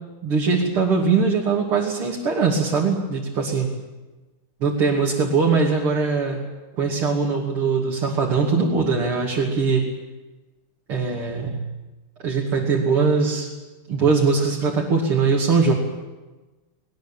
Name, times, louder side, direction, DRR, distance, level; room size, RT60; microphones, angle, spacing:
voice 1, 0.2-3.7 4.6-6.4 6.8-9.9 10.9-11.6 12.2-13.5 13.9-15.7, right 4 dB, 75° right, -3 dB, 3.6 m, -21 dB
21.0 x 20.0 x 8.9 m, 1.2 s
omnidirectional pair, 2.4 m